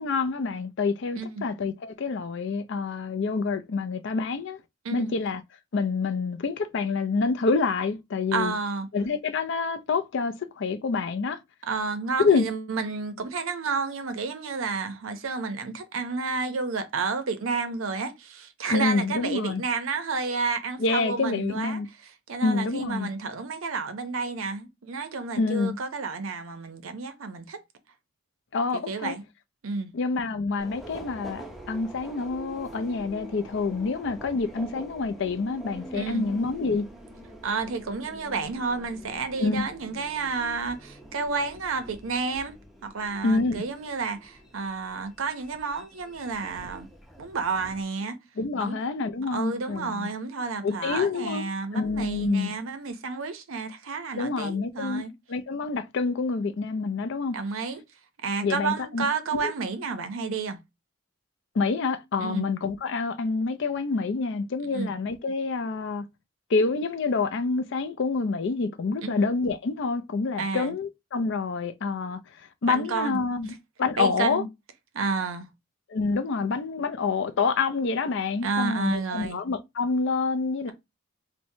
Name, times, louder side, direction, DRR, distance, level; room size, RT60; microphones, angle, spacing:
voice 1, 0.0-4.6 4.9-5.4 5.7-8.5 8.9-11.4 12.2-12.5 18.7-19.6 20.8-21.9 22.4-23.1 25.4-25.8 28.5-29.1 29.9-36.9 39.4-39.7 43.2-43.7 48.4-50.1 50.6-51.4 51.7-52.5 54.2-55.0 55.3-57.3 58.4-59.1 59.3-59.5 61.5-66.1 66.5-74.4 75.9-80.7, left 4 dB, 60° left, 0.4 m, -27 dB
voice 2, 8.3-8.9 11.7-21.8 22.3-27.6 28.7-29.2 29.6-29.9 35.9-36.2 37.4-42.5 42.8-46.9 47.2-48.2 48.6-48.8 49.3-55.1 57.3-57.8 58.2-60.6 62.2-62.5 64.7-64.9 69.0-69.2 70.4-70.8 72.7-73.2 74.0-74.5 74.9-75.5 78.4-79.4, right 4 dB, 75° right, 0.6 m, -31 dB
Subway metro underground, 30.6-47.8, right 1 dB, ahead, 0.5 m, -45 dB
4.4 x 2.1 x 2.7 m
head